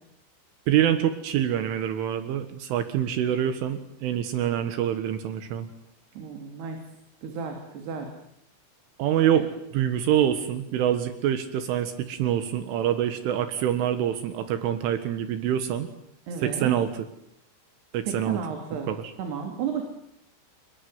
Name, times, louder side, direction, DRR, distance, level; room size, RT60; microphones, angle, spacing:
voice 1, 0.7-5.7 9.0-9.5 9.7-15.9 16.4-16.9 17.9-18.4 18.9-19.1, right 10 dB, 80° right, 9 dB, 4.0 m, -25 dB
voice 2, 6.1-6.8 7.2-8.1 9.3-9.4 16.3-16.8 18.0-18.9 19.2-19.9, right 6 dB, 60° right, 4 dB, 4.9 m, -32 dB
29.5 x 21.5 x 9.5 m, 0.75 s
omnidirectional pair, 5.7 m